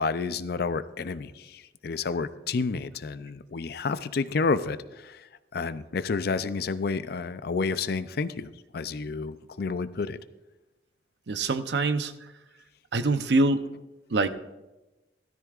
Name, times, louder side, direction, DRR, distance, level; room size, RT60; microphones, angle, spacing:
voice 1, 0.0-10.2, left 4 dB, 60° left, 13 dB, 0.5 m, -30 dB
voice 2, 11.3-12.1 12.9-13.7 14.1-14.3, right 2 dB, 75° right, 10 dB, 0.7 m, -24 dB
16.0 x 13.0 x 2.4 m, 1.0 s
head